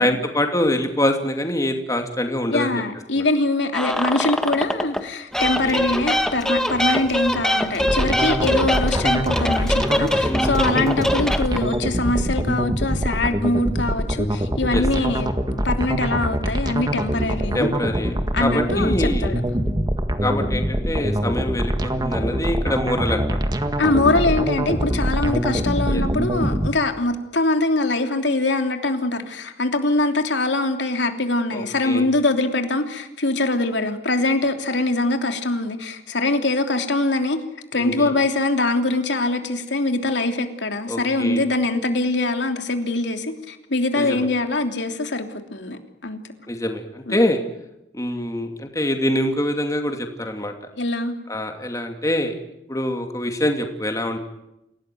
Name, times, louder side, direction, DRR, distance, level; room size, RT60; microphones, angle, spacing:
voice 1, 0.0-2.8 3.2-3.3 5.4-5.8 10.2-10.9 14.7-14.8 17.5-19.3 20.2-23.4 25.9-26.0 31.5-32.1 37.7-38.1 40.9-41.4 44.0-44.3 46.5-47.4 47.9-50.5 51.3-52.3 52.7-54.2, left 1 dB, 20° left, 4 dB, 2.7 m, -25 dB
voice 2, 2.5-17.7 18.3-19.4 23.8-37.4 37.7-46.2 47.1-47.2 50.7-51.1, left 2 dB, 90° left, 5 dB, 3.2 m, -23 dB
sound 1, 3.7-5.0 5.3-11.8, left 1 dB, 5° left, 1.6 m, -23 dB
sound 2, 7.8-26.7, right 1 dB, 25° right, 1.7 m, -24 dB
28.0 x 18.0 x 9.3 m, 0.88 s
head